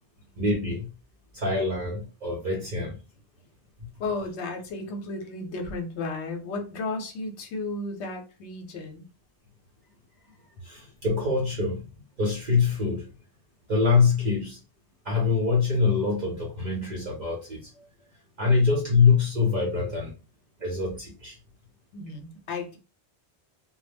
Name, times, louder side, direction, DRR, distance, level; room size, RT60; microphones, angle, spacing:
voice 1, 0.4-0.9 1.3-3.0 10.6-11.8 12.2-13.1 13.7-14.6 15.1-17.7 18.4-20.1 20.6-21.4, left 4 dB, 50° right, 0.7 m, -24 dB
voice 2, 4.0-9.0 17.8-17.9 21.9-22.8, left 3 dB, 80° left, 0.9 m, -34 dB
2.1 x 2.0 x 3.3 m
omnidirectional pair, 1.1 m